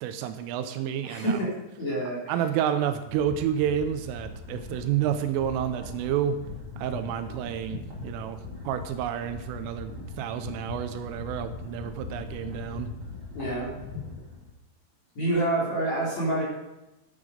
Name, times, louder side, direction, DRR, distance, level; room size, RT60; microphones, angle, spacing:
voice 1, 0.0-1.4 2.3-6.4 6.8-8.4 8.7-9.9 10.2-12.9, right 9 dB, 85° right, 9 dB, 3.1 m, -29 dB
voice 2, 1.0-2.3 13.3-13.7 15.2-16.4, right 1 dB, 35° left, -6 dB, 4.4 m, -27 dB
sound 1, 3.0-14.5, left 3 dB, 40° right, 1.9 m, -40 dB
11.0 x 9.9 x 5.0 m, 0.98 s
omnidirectional pair, 5.9 m